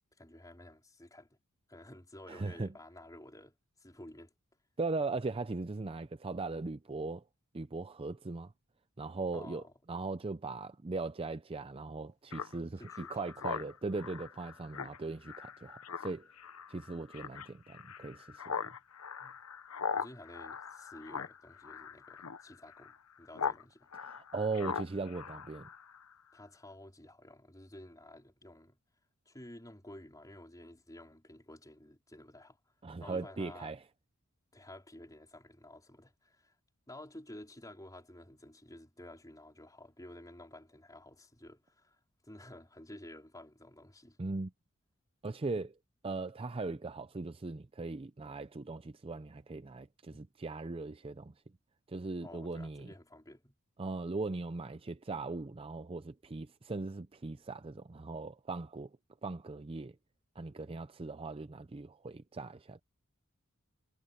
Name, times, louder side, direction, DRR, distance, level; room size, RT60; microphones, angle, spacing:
voice 1, 0.2-1.3 1.7-4.3 9.3-9.7 12.8-13.6 19.2-19.4 19.9-23.9 26.3-28.8 29.3-32.6 33.0-33.7 34.5-36.5 36.9-44.2 50.1-50.2 52.2-53.6, left 1 dB, 15° left, 4.5 m, -52 dB
voice 2, 2.3-2.7 4.8-7.2 7.5-8.5 9.0-16.3 16.7-18.7 24.0-25.7 32.8-33.8 44.2-44.5 45.2-45.8 46.0-51.3 51.9-52.9 53.8-58.9 59.2-59.9 60.4-62.8, right 3 dB, 25° right, 0.5 m, -39 dB
Speech synthesizer, 12.3-23.6 23.9-26.1, left 6 dB, 85° left, 0.9 m, -41 dB
head